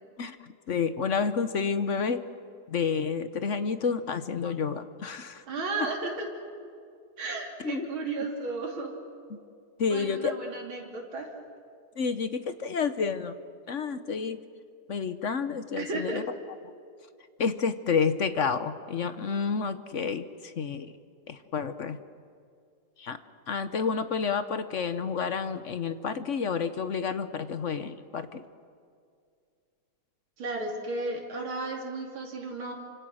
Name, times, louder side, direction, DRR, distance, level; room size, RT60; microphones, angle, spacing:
voice 1, 0.2-2.2 2.7-5.4 7.6-7.9 9.8-10.3 12.0-13.3 13.7-14.4 14.9-16.2 17.4-20.9 21.3-22.0 23.0-23.2 23.5-28.4, left 5 dB, 50° left, 10 dB, 0.9 m, -30 dB
voice 2, 5.5-6.3 7.2-8.9 9.8-11.3 15.8-16.2 30.4-32.7, right 3 dB, 75° right, -1 dB, 3.6 m, -34 dB
28.5 x 25.5 x 6.4 m, 2.3 s
omnidirectional pair, 2.3 m